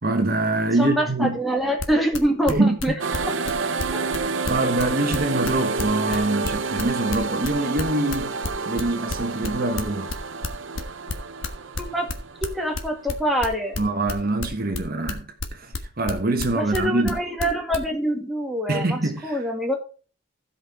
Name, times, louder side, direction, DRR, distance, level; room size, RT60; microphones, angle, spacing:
voice 1, 0.0-1.4 2.5-3.0 4.5-8.4 8.7-10.1 13.8-15.2 15.5-17.2 18.7-19.4, right 2 dB, 50° right, 1.3 m, -24 dB
voice 2, 0.8-2.9 3.9-4.0 6.1-6.3 11.8-12.1 12.4-13.8 16.5-19.8, equal, ahead, 1.9 m, -25 dB
sound 1, 1.6-17.9, left 3 dB, 70° left, 1.4 m, -30 dB
sound 2, 3.0-13.3, right 4 dB, 70° right, 0.8 m, -29 dB
15.5 x 5.5 x 4.4 m
head